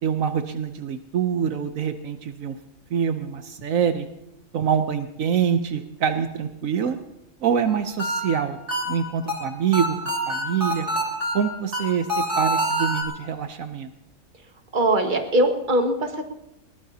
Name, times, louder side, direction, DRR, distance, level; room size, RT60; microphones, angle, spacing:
voice 1, 0.0-2.6 2.9-4.1 4.5-7.0 7.4-8.6 8.9-10.0 10.3-10.9 11.3-12.1 12.4-13.9, right 7 dB, 75° right, 8 dB, 1.2 m, -25 dB
sound 1, 7.7-13.0, right 1 dB, 55° right, 3.8 m, -27 dB
voice 2, 14.7-16.2, right 1 dB, 35° right, 4 dB, 1.7 m, -21 dB
21.5 x 18.5 x 2.8 m, 0.86 s
omnidirectional pair, 1.4 m